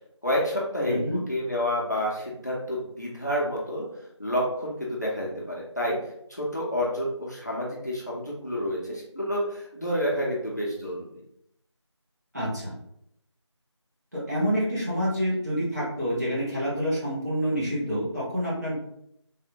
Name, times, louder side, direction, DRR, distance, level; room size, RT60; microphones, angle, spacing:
voice 1, 0.2-3.9 4.2-6.0 6.3-11.1, equal, 35° left, -4 dB, 0.6 m, -29 dB
voice 2, 0.9-1.2 12.3-12.7 14.1-18.8, equal, 35° right, -8 dB, 1.1 m, -27 dB
3.4 x 2.3 x 2.8 m, 0.76 s
figure-of-eight pair, 180°, 15 cm